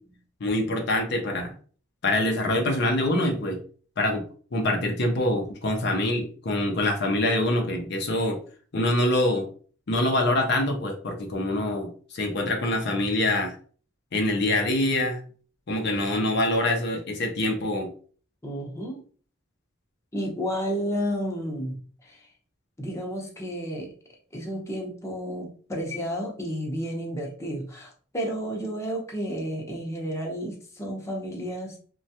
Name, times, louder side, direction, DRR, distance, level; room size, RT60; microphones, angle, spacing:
voice 1, 0.4-1.5 2.0-3.6 4.0-4.2 4.5-8.4 8.7-9.5 9.9-13.5 14.1-15.2 15.7-17.9, left 1 dB, 60° left, 3 dB, 0.6 m, -25 dB
voice 2, 18.4-19.0 20.1-22.3 22.8-23.9 24.3-31.8, equal, 15° left, -1 dB, 0.7 m, -32 dB
3.2 x 2.3 x 2.7 m, 0.42 s
head